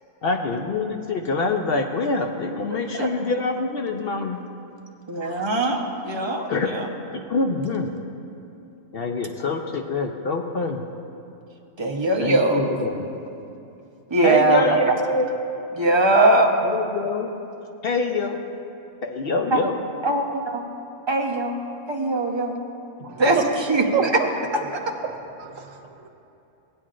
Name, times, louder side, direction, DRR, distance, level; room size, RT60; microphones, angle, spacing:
voice 1, 0.2-4.4 6.5-6.7 7.1-7.9 8.9-10.8 12.2-13.1 14.2-15.3 16.6-17.3 17.8-18.4 19.0-19.7, left 3 dB, 60° left, 3 dB, 0.7 m, -25 dB
voice 2, 5.1-6.9 11.8-12.7 14.1-14.9 15.8-16.5 19.5-19.7 20.0-20.6 21.1-21.6 21.9-22.5 23.2-23.4 23.7-24.1, right 2 dB, 25° right, 0 dB, 0.7 m, -21 dB
voice 3, 23.0-23.5 23.9-24.3 25.0-26.1, right 7 dB, 80° right, 4 dB, 1.2 m, -28 dB
18.0 x 8.7 x 2.5 m, 2.7 s
omnidirectional pair, 1.3 m